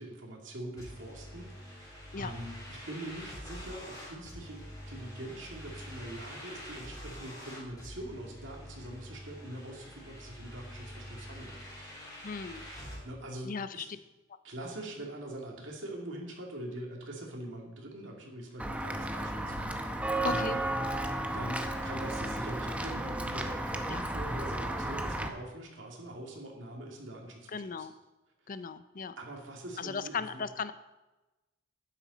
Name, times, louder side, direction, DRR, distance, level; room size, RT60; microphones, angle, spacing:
voice 1, 0.0-11.6 13.0-13.9 14.4-20.6 21.2-27.9 28.4-28.5 29.2-30.4, right 1 dB, 65° right, 0 dB, 2.4 m, -43 dB
sound 1, 0.8-13.0, equal, 20° left, 4.1 m, -46 dB
voice 2, 12.2-12.6 13.4-13.9 20.2-20.6 23.9-24.0 27.5-27.9 28.5-29.1 29.8-30.7, left 5 dB, 45° left, 13 dB, 0.5 m, -36 dB
Walk footsteps / Bell, 18.6-25.3, right 1 dB, 5° right, 0.8 m, -33 dB
11.5 x 9.9 x 4.2 m, 1.1 s
head